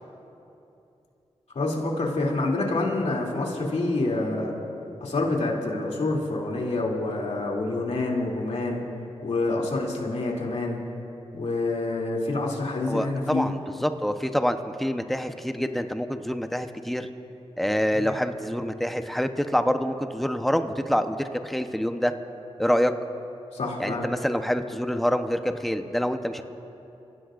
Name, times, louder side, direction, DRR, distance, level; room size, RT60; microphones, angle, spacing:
voice 1, 1.5-4.6 5.0-8.8 9.2-10.8 11.3-13.5 17.9-18.0 23.5-24.1, left 2 dB, 70° left, -2 dB, 2.8 m, -27 dB
voice 2, 12.9-17.1 17.6-21.2 21.4-22.1 22.6-22.9 23.8-26.4, equal, ahead, 7 dB, 0.9 m, -26 dB
28.0 x 16.5 x 2.6 m, 2.8 s
cardioid pair, 55°, 12 cm